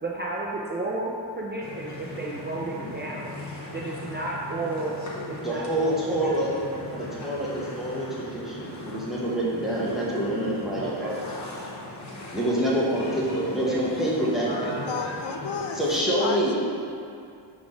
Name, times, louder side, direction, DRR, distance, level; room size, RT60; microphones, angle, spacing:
voice 1, 0.0-3.3 3.7-5.0 5.3-7.2 10.8-11.1 13.4-15.0, right 2 dB, 25° right, -4 dB, 0.4 m, -33 dB
sound 1, 1.6-16.0, left 2 dB, 35° left, 0.9 m, -39 dB
voice 2, 5.4-6.5 6.9-11.2 12.3-14.8 15.8-16.5, right 1 dB, ahead, -7 dB, 1.1 m, -26 dB
voice 3, 14.8-15.8 16.2-16.5, left 5 dB, 75° left, 3 dB, 0.6 m, -32 dB
4.7 x 3.9 x 5.1 m, 2.4 s
wide cardioid pair, 140°, 47 cm